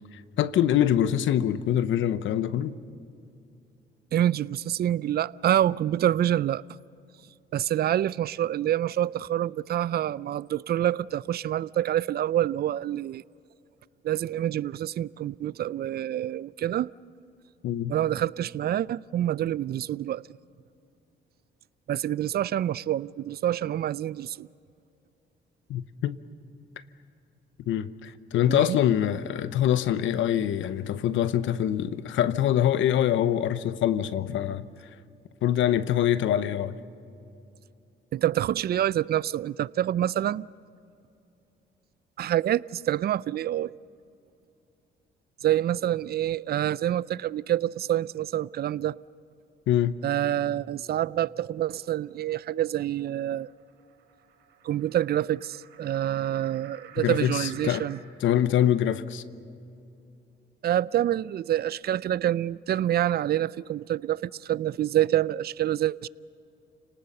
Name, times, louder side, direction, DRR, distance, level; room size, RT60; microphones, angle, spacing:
voice 1, 0.4-2.7 17.6-18.0 25.7-26.2 27.7-34.7 35.4-36.7 49.7-50.0 57.0-57.8 58.2-59.2, left 10 dB, 75° left, 0.9 m, -24 dB
voice 2, 4.1-6.6 7.5-13.2 14.0-16.9 17.9-20.2 21.9-24.5 28.5-28.8 38.1-40.5 42.2-43.7 45.4-49.0 50.0-53.5 54.6-58.0 60.6-66.1, right 12 dB, 50° right, 0.4 m, -27 dB
sound 1, 51.3-58.0, right 8 dB, 85° right, 3.6 m, -52 dB
29.5 x 19.0 x 6.7 m
cardioid pair, 90°, 20 cm